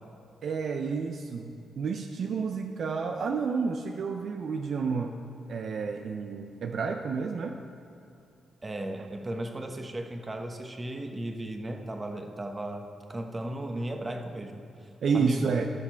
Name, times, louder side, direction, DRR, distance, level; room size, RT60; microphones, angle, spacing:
voice 1, 0.4-5.2 5.5-7.6 15.0-15.7, right 5 dB, 65° right, 5 dB, 0.5 m, -30 dB
voice 2, 8.6-14.9 15.1-15.5, right 1 dB, 30° right, 5 dB, 1.1 m, -36 dB
14.5 x 6.0 x 4.4 m, 2.7 s
supercardioid pair, 55°, 0 cm